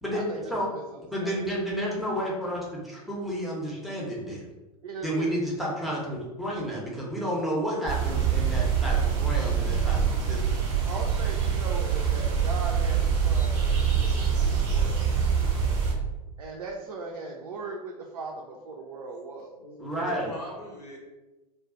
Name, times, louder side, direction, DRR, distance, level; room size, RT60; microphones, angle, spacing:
voice 1, 0.0-0.7 1.1-4.4 5.0-10.6 19.8-20.3, equal, ahead, -5 dB, 0.7 m, -31 dB
voice 2, 0.7-1.3 4.8-5.3 10.8-15.1 16.4-19.6, right 3 dB, 60° right, -1 dB, 0.5 m, -39 dB
sound 1, 7.9-15.9, right 7 dB, 35° right, 0.9 m, -25 dB
voice 3, 19.6-21.0, left 1 dB, 80° left, -4 dB, 1.2 m, -40 dB
2.4 x 2.3 x 3.6 m, 1.1 s
figure-of-eight pair, 90°, 20 cm